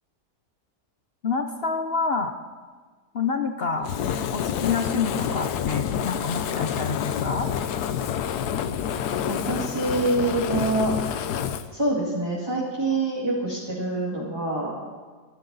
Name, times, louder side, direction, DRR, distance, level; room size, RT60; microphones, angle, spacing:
voice 1, 1.2-2.3 3.1-3.9 4.3-7.5, left 5 dB, 55° left, 7 dB, 0.7 m, -27 dB
Fire, 3.8-11.7, left 8 dB, 70° left, 1.2 m, -28 dB
voice 2, 9.3-10.9 11.7-14.7, right 2 dB, 15° right, -5 dB, 2.3 m, -25 dB
25.0 x 11.5 x 4.1 m, 1.5 s
omnidirectional pair, 1.8 m